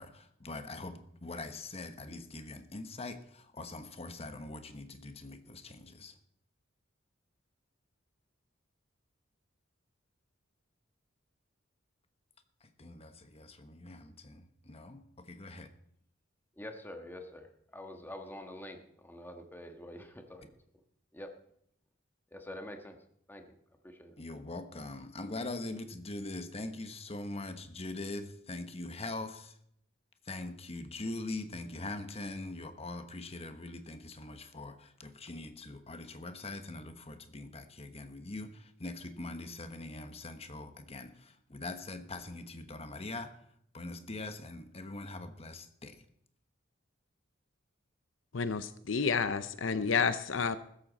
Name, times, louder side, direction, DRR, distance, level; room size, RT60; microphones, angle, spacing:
voice 1, 0.0-6.2 12.6-15.7 24.2-29.6 30.2-43.3 43.7-46.0, left 2 dB, 30° left, 8 dB, 1.1 m, -42 dB
voice 2, 16.5-20.5 21.1-21.3 22.3-23.4 23.8-24.2, left 1 dB, 10° left, 4 dB, 1.4 m, -46 dB
voice 3, 48.3-50.6, left 5 dB, 70° left, 12 dB, 0.7 m, -30 dB
15.5 x 13.5 x 4.1 m, 0.71 s
head